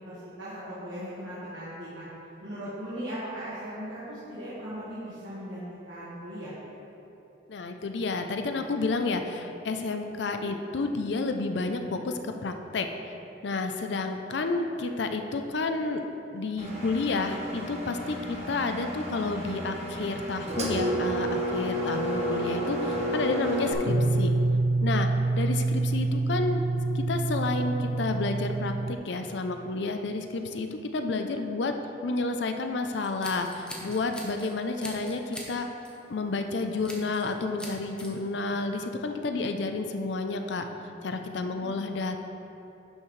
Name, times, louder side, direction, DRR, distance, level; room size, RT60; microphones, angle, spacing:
voice 1, 0.1-2.1 2.4-6.6 41.2-41.6, equal, 70° right, -11 dB, 1.8 m, -38 dB
voice 2, 7.5-12.9 13.4-16.0 16.3-24.3 24.8-25.1 25.4-26.6 26.9-31.7 32.0-35.7 36.1-40.6 41.0-42.2, left 3 dB, 65° left, 6 dB, 0.5 m, -30 dB
Engine, 16.6-23.7, right 1 dB, 35° right, 1.1 m, -31 dB
sound 1, 23.9-28.9, right 2 dB, 90° right, 0.4 m, -26 dB
Scissors, 32.9-34.5 34.8-35.5 35.8-36.1 36.8-37.3 37.6-38.1, left 1 dB, 5° left, 0.8 m, -42 dB
11.0 x 5.8 x 3.2 m, 2.9 s
head